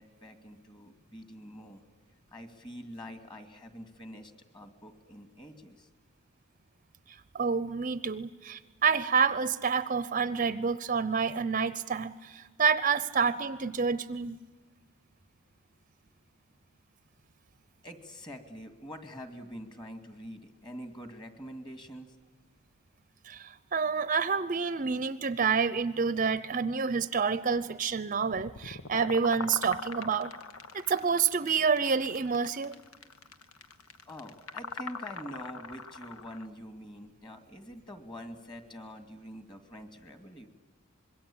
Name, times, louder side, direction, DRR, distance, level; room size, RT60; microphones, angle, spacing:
voice 1, 0.0-1.8 2.3-5.9 17.8-22.2 27.9-28.0 34.1-40.5, equal, 20° left, 7 dB, 2.5 m, -45 dB
voice 2, 7.3-14.4 23.2-30.3 30.7-32.7, right 5 dB, 40° right, 15 dB, 0.7 m, -28 dB
sound 1, 28.3-36.5, left 4 dB, 90° left, 1.3 m, -42 dB
26.0 x 22.0 x 8.7 m, 1.3 s
head